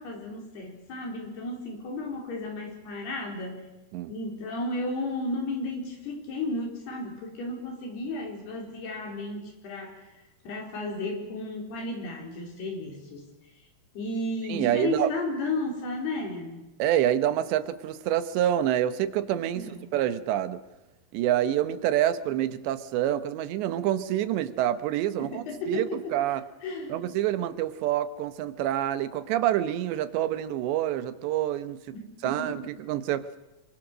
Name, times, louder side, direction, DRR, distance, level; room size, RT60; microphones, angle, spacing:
voice 1, 0.0-3.7 4.1-13.3 13.9-16.7 19.5-19.9 25.2-26.1 26.6-27.1 31.9-32.6, left 2 dB, 65° left, 1 dB, 6.5 m, -34 dB
voice 2, 14.5-15.1 16.8-20.6 21.1-26.4 26.9-31.8 32.2-33.3, right 12 dB, 85° right, 12 dB, 3.4 m, -27 dB
26.0 x 24.0 x 6.3 m, 1.0 s
omnidirectional pair, 4.9 m